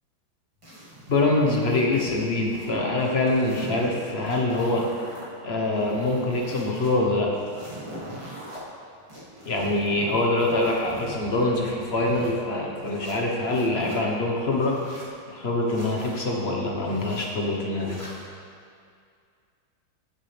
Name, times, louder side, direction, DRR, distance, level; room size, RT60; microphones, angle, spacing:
sound 1, 0.6-2.7 3.0-5.3 5.7-6.9 7.3-8.6 9.1-12.3 12.8-14.0 14.5-15.1 15.7-16.2 16.8-17.3 17.8-18.3, right 1 dB, 15° right, 1.6 m, -42 dB
voice 1, 1.1-4.8 5.4-7.3 9.4-14.7 15.3-18.1, left 2 dB, 40° left, -1 dB, 1.0 m, -24 dB
16.0 x 7.3 x 3.4 m, 2.3 s
omnidirectional pair, 2.4 m